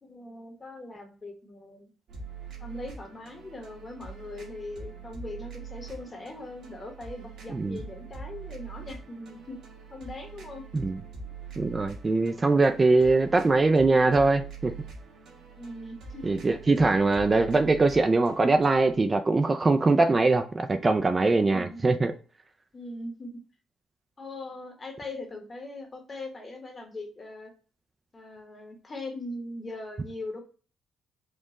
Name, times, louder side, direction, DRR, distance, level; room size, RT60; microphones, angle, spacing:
voice 1, 0.0-1.9 2.6-9.6 9.9-10.6 15.6-16.5 21.5-21.8 22.7-23.4 24.2-27.5 28.1-30.4, left 2 dB, 30° left, 1.2 m, -40 dB
sound 1, 2.1-19.0, right 5 dB, 70° right, 1.2 m, -44 dB
voice 2, 11.6-14.7 16.2-22.1, right 3 dB, 25° right, 0.4 m, -22 dB
4.4 x 2.3 x 2.9 m
cardioid pair, 90°, 0 cm